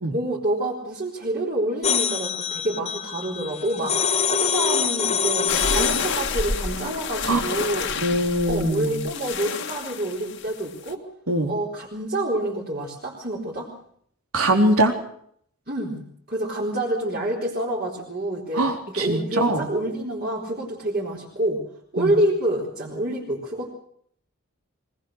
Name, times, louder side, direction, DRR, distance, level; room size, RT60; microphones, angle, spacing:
voice 1, 0.1-8.0 8.5-11.0 11.5-13.7 15.7-16.0 16.3-21.6 21.9-23.7, right 1 dB, 40° right, -4 dB, 4.3 m, -27 dB
sound 1, 1.8-6.3, left 7 dB, 30° left, 1.4 m, -25 dB
sound 2, 5.5-10.9, left 5 dB, 55° left, 1.7 m, -29 dB
voice 2, 8.0-9.1 11.3-11.5 14.3-14.9 18.5-19.7 22.0-22.1, right 1 dB, 80° right, 4 dB, 3.9 m, -22 dB
22.0 x 20.5 x 6.5 m, 0.65 s
head